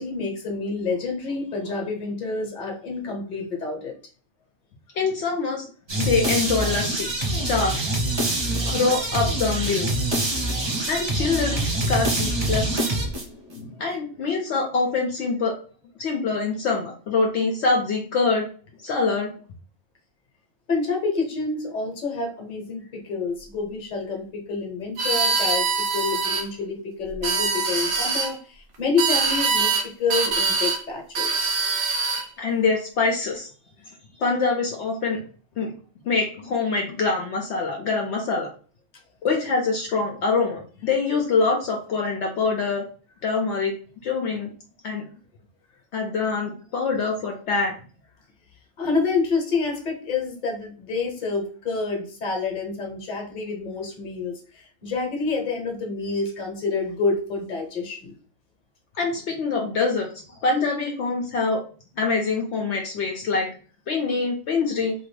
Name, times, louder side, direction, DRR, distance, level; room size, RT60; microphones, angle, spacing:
voice 1, 0.0-3.9 20.7-31.6 48.8-58.1, left 4 dB, 45° left, 2 dB, 1.0 m, -28 dB
voice 2, 5.0-5.7 6.0-7.1 7.4-7.9 8.6-9.9 10.9-11.6 11.9-12.9 13.5-15.6 16.0-18.5 18.8-19.3 32.4-33.5 34.2-35.2 35.6-35.7 36.0-38.5 39.2-42.8 43.2-43.8 44.0-44.5 44.8-45.0 45.9-47.7 58.9-60.1 60.4-61.6 62.0-63.5 63.9-64.9, left 4 dB, 70° left, 1 dB, 0.8 m, -24 dB
sound 1, 5.9-13.5, right 1 dB, 30° right, 0.6 m, -25 dB
sound 2, 25.0-26.4 27.1-28.3 29.0-29.8 30.1-30.8 31.1-32.3, right 4 dB, 75° right, 1.0 m, -23 dB
2.8 x 2.5 x 3.2 m, 0.40 s
omnidirectional pair, 1.2 m